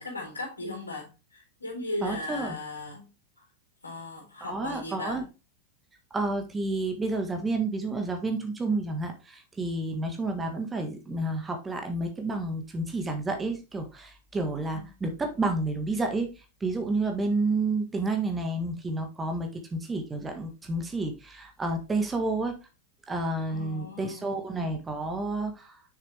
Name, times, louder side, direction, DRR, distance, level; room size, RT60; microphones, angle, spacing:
voice 1, 0.0-3.1 3.8-5.2 12.1-12.2 14.7-14.8 23.5-24.3, left 2 dB, 80° left, 3.9 m, -37 dB
voice 2, 2.0-2.6 4.4-5.2 6.1-16.3 16.6-22.5 23.1-25.8, right 2 dB, 15° right, 1.6 m, -30 dB
6.6 x 6.4 x 3.4 m
figure-of-eight pair, 90°, 0 cm